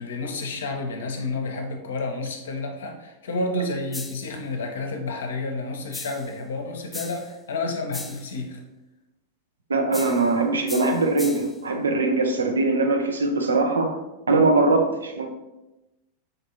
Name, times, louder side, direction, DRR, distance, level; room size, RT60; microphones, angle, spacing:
voice 1, 0.0-8.6, left 2 dB, 65° left, 3 dB, 0.6 m, -30 dB
sound 1, 3.9-4.4 5.9-6.3 6.9-7.3 7.9-8.3 9.9-10.3 10.7-11.6, left 3 dB, 10° left, 0.4 m, -38 dB
voice 2, 9.7-14.0 14.3-15.3, right 3 dB, 70° right, 4 dB, 0.5 m, -21 dB
3.9 x 3.4 x 2.7 m, 1.0 s
figure-of-eight pair, 90°, 0 cm